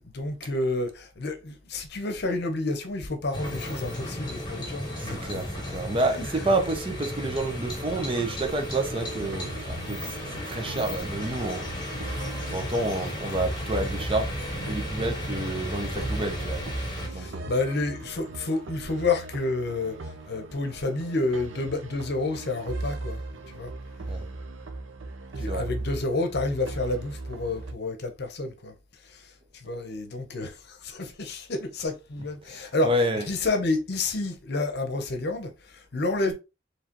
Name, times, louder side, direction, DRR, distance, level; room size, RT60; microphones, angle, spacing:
voice 1, 0.1-5.4 6.1-6.3 15.9-16.1 17.0-23.7 25.4-32.9 33.3-36.3, left 2 dB, 60° left, 0.9 m, -30 dB
sound 1, 3.3-17.1, left 1 dB, 25° left, 2.0 m, -35 dB
voice 2, 4.9-10.2 10.5-12.2 12.5-16.7 17.1-17.5 24.1-24.3 25.5-25.7 32.5-33.2, right 1 dB, 30° right, 0.8 m, -29 dB
sound 2, 8.8-27.7, right 2 dB, 85° right, 0.6 m, -38 dB
4.7 x 3.2 x 3.0 m
head